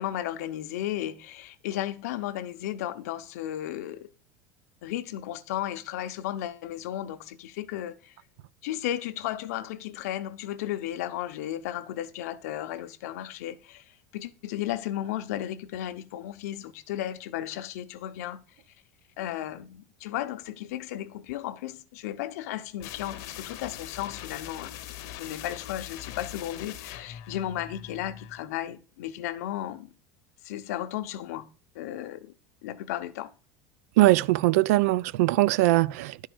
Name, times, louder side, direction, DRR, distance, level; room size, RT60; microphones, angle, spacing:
voice 1, 0.0-4.1 4.8-8.2 8.6-18.4 19.2-29.9 30.4-31.5 31.7-32.3 32.6-33.3, left 12 dB, 80° left, 0.8 m, -34 dB
sound 1, 22.8-28.4, left 12 dB, 45° left, 0.8 m, -42 dB
voice 2, 34.0-36.3, right 18 dB, 75° right, 0.4 m, -21 dB
11.5 x 4.6 x 6.2 m
cardioid pair, 180°, 8 cm